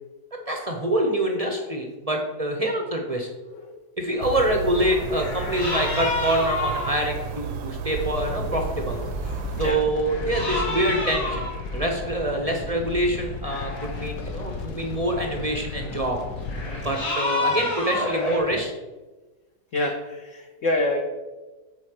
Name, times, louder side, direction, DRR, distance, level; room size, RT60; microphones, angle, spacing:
voice 1, 0.3-3.3 4.0-9.0 9.6-16.2 16.8-18.7, right 1 dB, 35° right, 2 dB, 0.6 m, -26 dB
voice 2, 3.4-3.8 9.6-9.8 19.7-21.0, left 2 dB, 55° left, 2 dB, 1.1 m, -27 dB
sound 1, 4.2-9.7, right 5 dB, 75° right, 1.3 m, -33 dB
sound 2, 4.8-7.4 8.3-8.4 9.1-9.4 9.7-12.7 13.3-14.1 14.5-18.4, left 2 dB, 85° left, 3.4 m, -30 dB
sound 3, 7.9-17.0, left 3 dB, 70° left, 1.2 m, -35 dB
8.4 x 4.0 x 6.5 m, 1.2 s
omnidirectional pair, 1.9 m